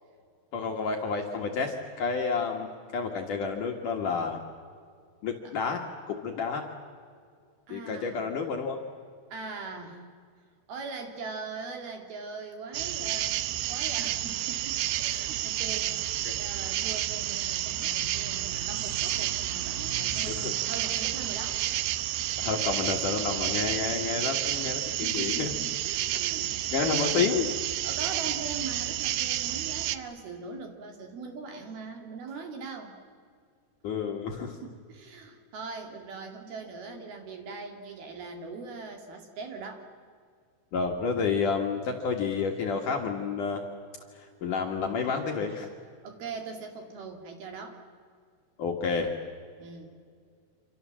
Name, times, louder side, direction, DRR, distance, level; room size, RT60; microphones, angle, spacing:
voice 1, 0.5-4.4 5.2-5.8 6.1-6.6 7.7-8.8 16.2-16.3 20.3-20.5 22.4-25.5 26.7-27.5 33.8-34.6 40.7-43.6 44.1-45.7 48.6-49.1, left 5 dB, 55° left, 2 dB, 2.5 m, -30 dB
voice 2, 7.7-8.3 9.3-10.0 10.7-21.6 25.0-27.4 27.8-32.9 34.6-39.8 46.0-47.8 49.6-49.9, right 4 dB, 60° right, 4 dB, 4.1 m, -41 dB
sound 1, 12.7-30.0, right 13 dB, 80° right, 2.3 m, -30 dB
27.5 x 27.0 x 7.5 m, 2.1 s
omnidirectional pair, 5.3 m